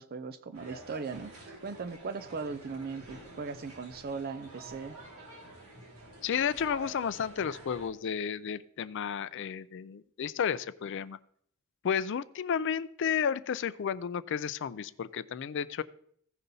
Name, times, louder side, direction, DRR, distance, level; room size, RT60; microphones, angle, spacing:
voice 1, 0.0-1.3 1.6-5.0, right 4 dB, 45° right, 11 dB, 0.5 m, -38 dB
sound 1, 0.5-7.9, right 2 dB, 80° right, 3.4 m, -49 dB
voice 2, 6.2-11.2 11.8-15.8, left 7 dB, 55° left, 16 dB, 0.4 m, -32 dB
16.0 x 5.4 x 4.0 m, 0.63 s
head